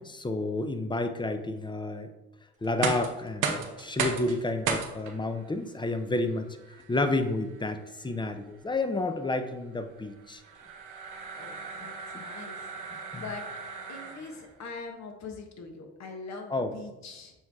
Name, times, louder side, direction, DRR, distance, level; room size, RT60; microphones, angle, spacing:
voice 1, 0.0-2.1 2.6-6.5 6.9-10.4 12.1-12.2 13.1-13.2 16.5-16.7, left 2 dB, 15° left, 8 dB, 0.6 m, -30 dB
sound 1, 2.6-14.5, right 6 dB, 90° right, 0.9 m, -37 dB
voice 2, 11.3-12.7 13.1-13.4 13.9-17.3, left 4 dB, 65° left, 3 dB, 1.3 m, -42 dB
7.0 x 4.6 x 3.6 m, 1.0 s
cardioid pair, 90°, 30 cm